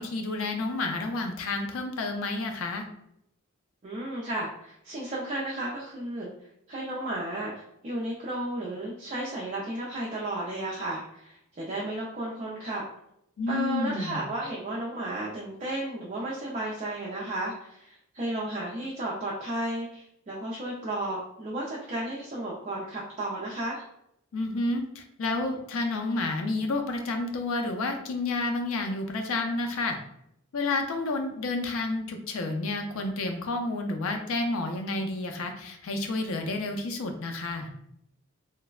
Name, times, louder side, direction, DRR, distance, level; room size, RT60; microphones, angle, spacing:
voice 1, 0.0-2.9 13.4-14.2 24.3-30.0 30.5-37.7, left 2 dB, 70° left, 4 dB, 0.4 m, -30 dB
voice 2, 3.8-6.3 6.7-7.5 7.8-12.8 13.5-23.8, right 1 dB, 35° right, -5 dB, 0.4 m, -33 dB
3.2 x 2.0 x 2.3 m, 0.77 s
head